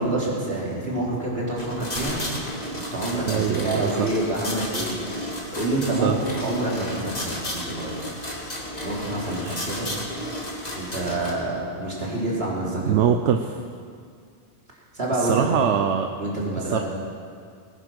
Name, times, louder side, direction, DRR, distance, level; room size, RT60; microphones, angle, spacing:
voice 1, 0.0-2.2 2.9-5.0 5.5-8.0 8.8-9.9 10.7-13.1 14.9-15.5 16.2-16.8, right 2 dB, 60° right, -4 dB, 3.6 m, -27 dB
sound 1, 1.6-11.3, left 1 dB, 35° left, 2.3 m, -33 dB
sound 2, 2.0-3.8, equal, 85° left, 2.9 m, -39 dB
voice 2, 3.3-4.1 6.0-6.2 9.4-9.7 12.9-13.6 15.1-16.1 16.6-16.8, right 8 dB, 85° right, 6 dB, 1.0 m, -23 dB
20.0 x 9.8 x 6.2 m, 2.2 s
omnidirectional pair, 1.2 m